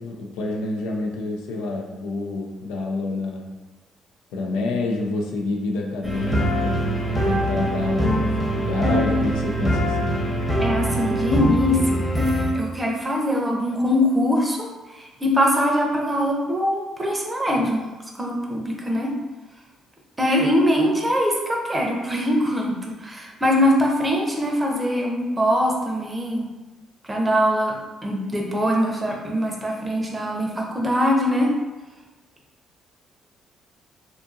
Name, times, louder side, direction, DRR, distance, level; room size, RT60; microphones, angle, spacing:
voice 1, 0.0-3.5 4.3-10.2, left 2 dB, 80° left, 1 dB, 0.3 m, -28 dB
sound 1, 6.0-12.5, equal, 10° left, 0.9 m, -23 dB
voice 2, 10.6-12.0 12.5-17.8 18.2-19.1 20.2-26.5 27.0-31.6, equal, 20° right, 0 dB, 0.6 m, -22 dB
2.6 x 2.4 x 2.4 m, 1.1 s
hypercardioid pair, 55°, 0 cm